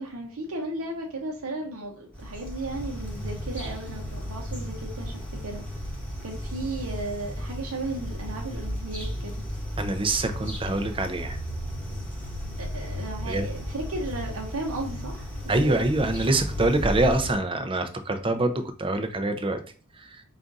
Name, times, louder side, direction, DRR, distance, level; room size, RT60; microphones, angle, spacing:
voice 1, 0.0-5.6 6.2-9.3 12.6-15.8, right 2 dB, 70° right, 0 dB, 0.7 m, -35 dB
sound 1, 2.1-17.3, equal, 5° left, 1.2 m, -34 dB
voice 2, 9.8-11.4 13.3-13.4 15.5-19.6, right 2 dB, 25° right, 7 dB, 0.5 m, -25 dB
4.9 x 2.4 x 3.9 m, 0.40 s
head